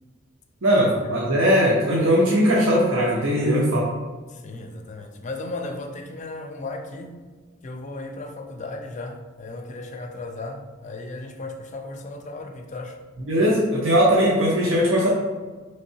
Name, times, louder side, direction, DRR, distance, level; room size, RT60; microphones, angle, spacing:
voice 1, 0.6-3.9 13.3-15.1, equal, 75° right, -6 dB, 0.8 m, -19 dB
voice 2, 4.3-7.2 7.6-13.0, left 2 dB, 35° left, 5 dB, 0.4 m, -35 dB
5.4 x 3.3 x 2.8 m, 1.4 s
head